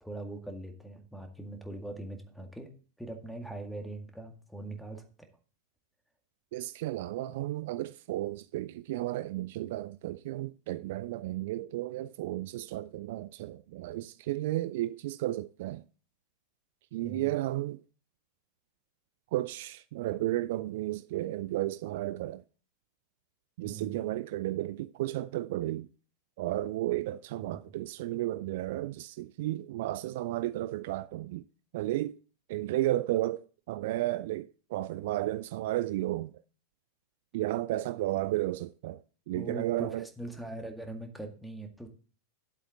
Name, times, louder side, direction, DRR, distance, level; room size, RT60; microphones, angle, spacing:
voice 1, 0.0-2.7 3.0-5.3 17.0-17.3 23.6-24.0 27.4-27.6 39.3-41.9, right 2 dB, ahead, 1.9 m, -41 dB
voice 2, 6.5-15.8 16.9-17.8 19.3-22.4 23.6-25.9 26.4-31.5 31.7-32.2 32.5-36.4 37.3-40.1, right 15 dB, 50° right, 0.4 m, -33 dB
10.5 x 7.8 x 3.7 m
figure-of-eight pair, 90°, 0 cm